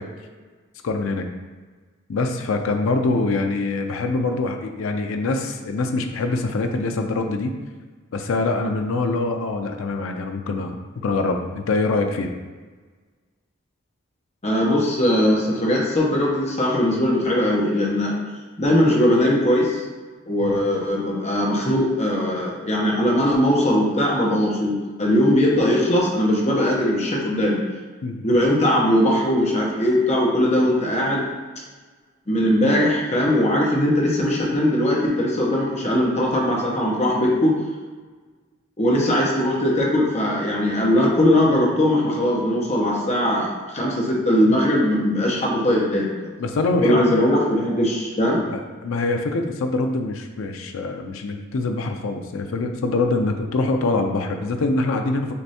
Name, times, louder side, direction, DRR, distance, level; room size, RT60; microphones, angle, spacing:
voice 1, 0.8-1.3 2.1-7.5 8.1-10.8 11.0-12.3 20.4-20.6 28.0-28.2 46.4-47.0 48.5-55.3, left 3 dB, 75° left, 4 dB, 0.4 m, -24 dB
voice 2, 14.4-18.2 18.6-19.8 20.3-27.6 28.2-31.2 32.3-37.5 38.8-46.3 46.8-48.4, left 1 dB, 30° left, -3 dB, 0.9 m, -20 dB
6.5 x 2.6 x 2.8 m, 1.4 s
head